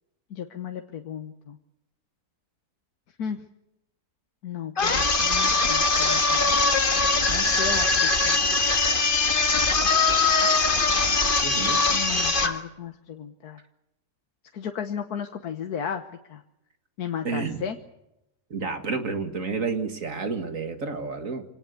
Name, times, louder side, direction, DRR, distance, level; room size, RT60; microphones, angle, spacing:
voice 1, 0.3-1.6 3.2-3.4 4.4-6.5 7.3-8.4 11.9-13.6 14.5-16.0 16.3-16.4 17.0-17.8, left 8 dB, 70° left, 6 dB, 1.6 m, -34 dB
sound 1, 4.8-12.6, left 3 dB, 35° left, 1.8 m, -22 dB
voice 2, 11.4-11.8 17.2-17.7 18.5-21.4, right 4 dB, 50° right, 7 dB, 2.3 m, -30 dB
25.5 x 18.5 x 8.3 m, 0.89 s
omnidirectional pair, 1.8 m